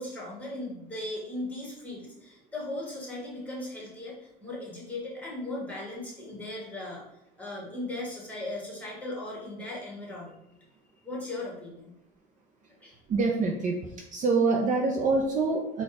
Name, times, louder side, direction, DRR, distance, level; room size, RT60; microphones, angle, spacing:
voice 1, 0.0-7.0 7.4-10.5 11.0-11.9 12.8-13.0, left 2 dB, 5° left, -4 dB, 1.6 m, -37 dB
voice 2, 13.1-13.8 14.1-15.8, right 3 dB, 35° right, 0 dB, 0.6 m, -25 dB
4.1 x 2.4 x 4.7 m, 0.81 s
cardioid pair, 140°, 21 cm